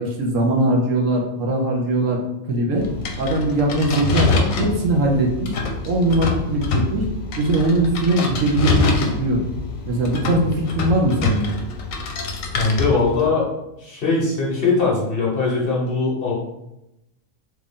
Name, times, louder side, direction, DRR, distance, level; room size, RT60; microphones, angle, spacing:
voice 1, 0.0-2.2 2.5-2.8 3.2-5.5 5.8-7.0 7.4-9.4 9.9-11.6, right 1 dB, 70° right, 0 dB, 1.0 m, -20 dB
sound 1, 2.7-13.3, left 3 dB, 75° left, 1.0 m, -25 dB
voice 2, 12.5-13.5 13.8-16.3, left 3 dB, 50° left, -4 dB, 1.0 m, -21 dB
3.2 x 2.4 x 3.6 m, 0.88 s
omnidirectional pair, 1.4 m